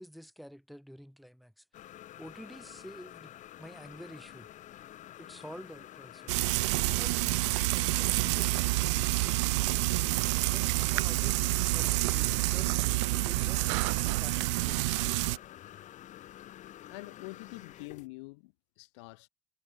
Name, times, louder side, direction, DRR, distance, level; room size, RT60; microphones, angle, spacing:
voice 1, 0.0-1.6 1.9-3.3 3.6-4.5 5.2-6.3 6.9-10.0 10.4-11.4 11.7-12.7 13.2-13.7 14.0-15.3, equal, ahead, 4.8 m, -50 dB
sound 1, 1.7-18.1, left 12 dB, 50° left, 4.8 m, -49 dB
Frying (food), 6.3-15.4, right 23 dB, 65° right, 0.9 m, -28 dB
voice 2, 16.9-19.3, left 25 dB, 65° left, 2.0 m, -46 dB
figure-of-eight pair, 55°, 16 cm